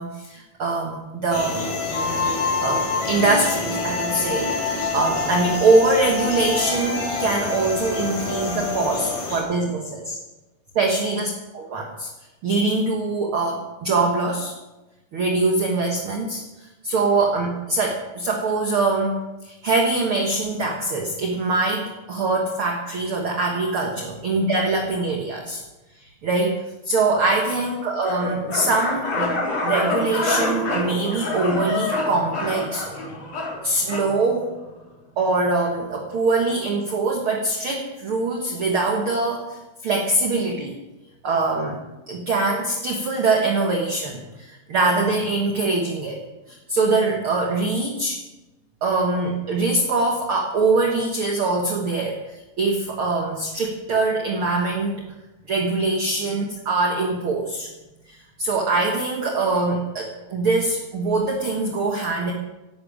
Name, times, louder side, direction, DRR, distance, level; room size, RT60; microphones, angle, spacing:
voice 1, 0.0-1.6 2.6-10.2 10.7-12.1 12.4-14.5 15.1-25.6 26.0-26.6 26.8-29.3 29.6-33.1 33.6-34.5 35.2-40.7 41.2-41.8 42.1-46.2 46.5-48.2 48.8-55.0 55.5-57.7 58.1-62.3, right 3 dB, 60° right, 0 dB, 1.4 m, -23 dB
sound 1, 1.3-9.4, left 4 dB, 75° left, 6.7 m, -26 dB
sound 2, 28.0-34.1, left 2 dB, 50° left, 5.5 m, -26 dB
16.0 x 12.0 x 5.0 m, 1.1 s
omnidirectional pair, 4.6 m